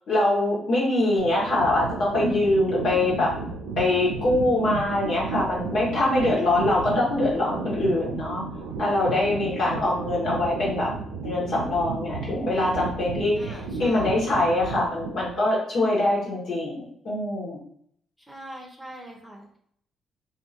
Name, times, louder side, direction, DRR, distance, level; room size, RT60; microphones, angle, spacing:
voice 1, 0.1-3.3 3.7-8.4 8.8-10.9 11.2-17.6, left 2 dB, 65° left, -6 dB, 1.4 m, -23 dB
sound 1, 1.2-15.4, right 4 dB, 85° right, 0.4 m, -33 dB
voice 2, 13.4-14.1 18.3-19.5, right 1 dB, 5° right, 0 dB, 0.9 m, -42 dB
2.7 x 2.6 x 2.8 m, 0.67 s
hypercardioid pair, 50°, 0 cm